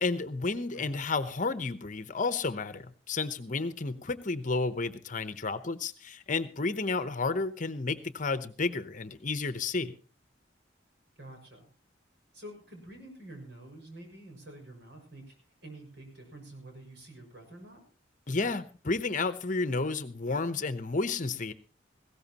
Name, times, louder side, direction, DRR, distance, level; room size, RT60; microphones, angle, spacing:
voice 1, 0.0-9.9 18.3-21.5, left 3 dB, 45° left, 12 dB, 0.9 m, -31 dB
voice 2, 11.2-11.7 12.3-15.3 15.6-17.9, right 1 dB, 65° right, 2 dB, 6.0 m, -48 dB
19.5 x 16.5 x 2.9 m, 0.35 s
head